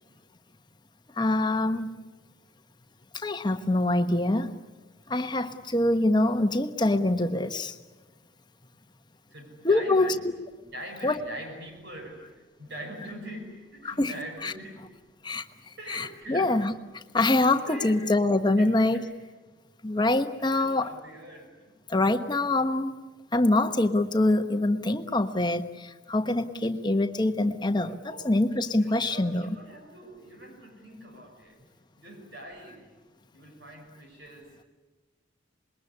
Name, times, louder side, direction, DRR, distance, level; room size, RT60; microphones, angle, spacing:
voice 1, 1.2-1.9 3.1-4.5 5.1-7.8 9.6-10.1 11.0-11.2 13.8-14.1 14.4-14.5 15.2-15.4 15.9-19.0 19.8-20.9 21.9-22.9 23.3-29.5, left 2 dB, 20° left, 8 dB, 1.2 m, -25 dB
voice 2, 9.3-10.3 10.6-14.8 15.8-16.6 17.7-18.0 18.5-19.1 20.4-21.8 22.1-22.3 28.0-28.3 28.7-31.6 32.0-32.9 33.3-34.7, right 1 dB, 60° right, 3 dB, 5.6 m, -43 dB
26.5 x 21.5 x 9.8 m, 1.3 s
head